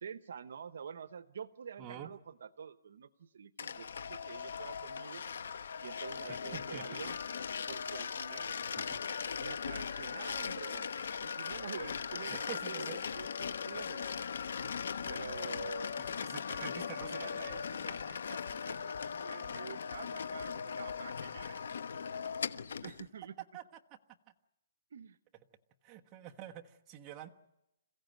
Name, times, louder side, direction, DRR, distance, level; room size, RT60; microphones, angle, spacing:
voice 1, 0.0-5.2 5.8-7.1 7.7-8.9 9.4-10.9 11.2-14.2 15.0-16.0 16.5-21.6 22.8-23.4 24.9-25.2, right 7 dB, 70° right, 14 dB, 0.9 m, -48 dB
voice 2, 1.8-2.1 6.3-6.8 8.8-9.0 12.3-13.0 16.0-17.6 17.8-17.9 22.8-22.9 23.5-23.6 25.8-27.3, right 10 dB, 20° right, 1 dB, 1.2 m, -47 dB
sound 1, 3.6-23.1, left 6 dB, 75° left, 1.1 m, -39 dB
sound 2, 15.0-20.6 20.9-21.0 21.4-21.5, left 4 dB, 40° left, 5.1 m, -57 dB
27.5 x 16.0 x 9.3 m, 0.92 s
hypercardioid pair, 165°, 0 cm